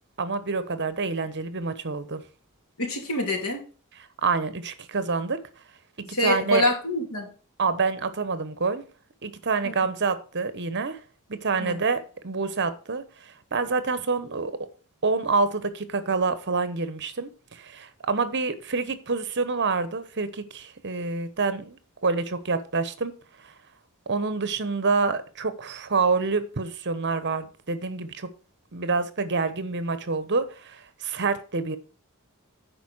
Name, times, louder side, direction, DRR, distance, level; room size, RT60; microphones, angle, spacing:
voice 1, 0.2-2.2 4.2-5.4 6.2-6.7 7.6-8.8 9.2-11.0 11.3-14.5 15.0-23.1 23.4-23.5 24.1-28.3 28.7-31.8, right 4 dB, 55° right, 1.1 m, -27 dB
voice 2, 2.8-3.6 6.1-7.3 9.6-9.7 11.6-11.8, left 1 dB, 80° left, 3.0 m, -26 dB
10.5 x 4.7 x 6.2 m
head